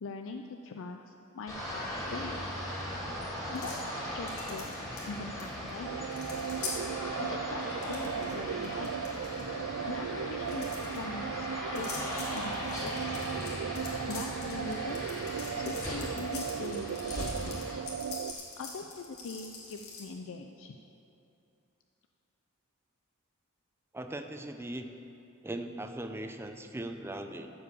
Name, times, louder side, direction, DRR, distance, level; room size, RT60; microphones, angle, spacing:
voice 1, 0.0-2.5 3.5-3.7 4.0-4.7 5.0-5.9 7.2-9.0 9.8-13.1 14.1-15.0 15.6-17.6 18.6-20.8, left 3 dB, 65° left, 4 dB, 0.5 m, -42 dB
sound 1, 1.5-17.8, equal, 15° left, 2.2 m, -38 dB
sound 2, 3.6-3.8 4.3-5.4 5.7-5.8 6.0-6.7 7.6-8.3 8.6-9.4 10.4-11.0 11.8-20.0, left 4 dB, 85° left, 2.1 m, -44 dB
sound 3, 5.8-18.3, right 8 dB, 80° right, 0.3 m, -37 dB
voice 2, 23.9-24.9 25.4-27.5, right 1 dB, 10° right, 6 dB, 0.5 m, -39 dB
14.0 x 5.0 x 6.9 m, 2.7 s
head